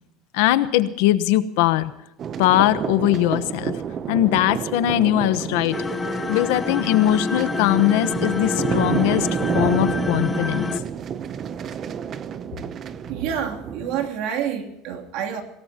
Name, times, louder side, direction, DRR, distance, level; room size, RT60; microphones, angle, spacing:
voice 1, 0.3-1.9 2.4-3.7 4.1-5.7 6.3-9.3 9.5-10.7, left 14 dB, 80° left, 13 dB, 1.1 m, -20 dB
sound 1, 2.2-14.1, right 8 dB, 30° right, 0.7 m, -30 dB
sound 2, 5.7-10.8, left 4 dB, 15° left, 0.8 m, -27 dB
voice 2, 13.1-15.4, right 8 dB, 60° right, 3 dB, 2.9 m, -28 dB
26.0 x 18.0 x 2.9 m, 0.87 s
cardioid pair, 165°, 0 cm